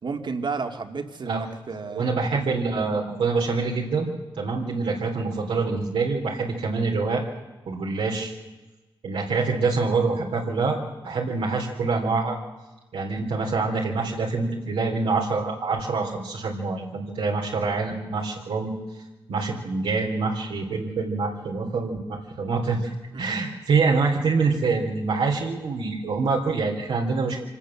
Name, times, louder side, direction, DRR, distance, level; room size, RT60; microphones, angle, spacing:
voice 1, 0.0-2.2 2.7-2.9 23.1-23.2, right 4 dB, 55° right, 6 dB, 2.3 m, -32 dB
voice 2, 1.9-4.1 4.4-7.2 7.7-8.3 9.0-12.4 12.9-18.7 19.3-22.8 23.2-27.4, right 4 dB, 85° right, -2 dB, 3.5 m, -25 dB
25.0 x 18.0 x 7.4 m, 1.1 s
cardioid pair, 55°, 9 cm